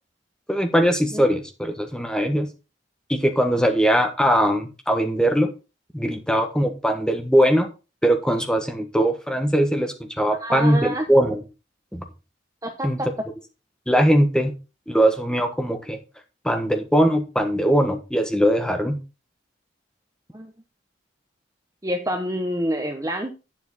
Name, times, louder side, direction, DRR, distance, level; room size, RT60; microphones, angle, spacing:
voice 1, 0.5-2.5 3.1-5.5 5.9-7.7 8.0-11.4 11.9-12.0 12.8-13.0 13.9-14.5 14.9-16.0 16.4-19.0, equal, 5° left, 4 dB, 1.3 m, -20 dB
voice 2, 10.4-11.1 12.6-13.1 20.3-20.5 21.8-23.3, equal, 15° right, 5 dB, 0.9 m, -27 dB
9.1 x 7.4 x 4.1 m, 0.30 s
head